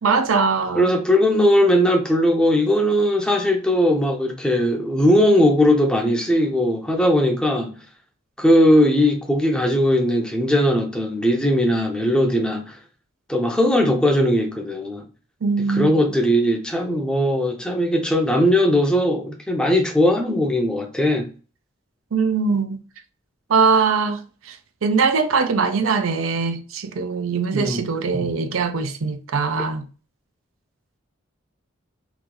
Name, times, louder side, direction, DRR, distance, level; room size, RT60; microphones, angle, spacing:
voice 1, 0.0-0.9 15.4-15.9 22.1-22.8 23.5-24.6 24.8-29.9, right 5 dB, 80° right, 0.5 m, -21 dB
voice 2, 0.7-7.7 8.4-12.8 13.3-15.0 15.7-21.3 27.5-27.8 28.1-28.3, equal, 5° left, 0.6 m, -19 dB
3.0 x 2.6 x 3.7 m
head